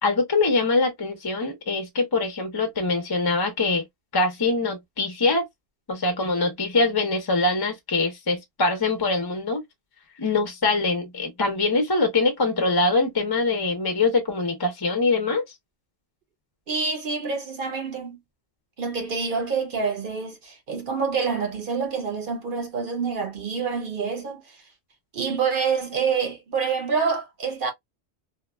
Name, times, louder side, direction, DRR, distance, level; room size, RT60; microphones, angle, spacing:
voice 1, 0.0-3.8 4.1-5.5 5.9-9.6 10.2-15.4, left 3 dB, 25° left, 0.6 m, -23 dB
voice 2, 16.7-18.2 18.8-24.4 25.1-27.7, right 5 dB, 55° right, 0.9 m, -27 dB
2.8 x 2.2 x 2.2 m
omnidirectional pair, 1.1 m